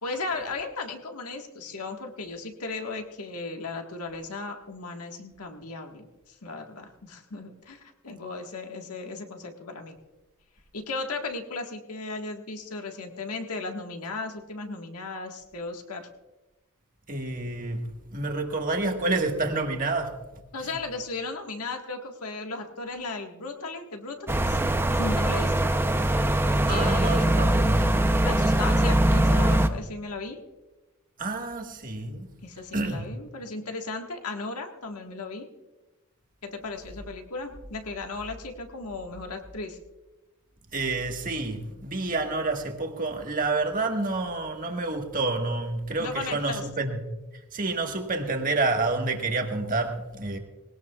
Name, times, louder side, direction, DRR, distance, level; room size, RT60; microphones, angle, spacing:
voice 1, 0.0-10.0 10.7-16.1 20.5-24.6 25.0-25.7 26.7-27.4 28.2-30.4 32.4-35.5 36.4-39.8 46.0-46.9, left 3 dB, 85° left, 3 dB, 1.6 m, -36 dB
voice 2, 17.1-17.8 18.1-20.1 26.7-27.9 31.2-32.3 32.7-33.1 40.7-47.0 47.5-50.4, right 3 dB, 40° right, 3 dB, 1.5 m, -28 dB
sound 1, 24.3-29.7, right 1 dB, 10° right, 0.6 m, -22 dB
20.5 x 18.5 x 2.4 m, 1.1 s
head